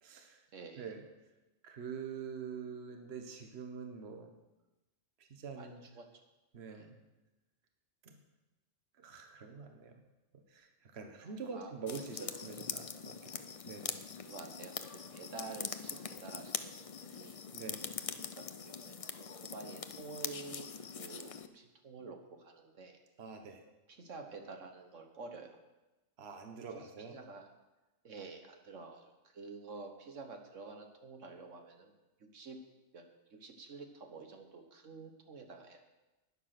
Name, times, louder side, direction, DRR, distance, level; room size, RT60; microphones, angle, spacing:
voice 1, 0.0-0.4 0.8-1.1 1.6-4.3 5.2-5.8 6.5-6.9 8.0-8.2 9.0-9.9 10.5-13.3 13.6-14.0 17.5-17.8 23.2-23.6 26.2-27.1, right 5 dB, 55° right, 5 dB, 1.4 m, -45 dB
voice 2, 0.5-0.9 5.6-5.7 5.9-6.2 6.8-6.9 11.2-11.7 12.1-12.3 14.2-14.7 15.1-17.4 18.1-23.0 23.9-25.6 26.7-27.5 28.0-31.9 32.2-32.6 32.9-35.8, right 4 dB, 70° right, 4 dB, 1.6 m, -49 dB
sound 1, 11.9-21.5, left 6 dB, 50° left, 0.4 m, -43 dB
11.5 x 9.9 x 5.9 m, 1.1 s
omnidirectional pair, 1.3 m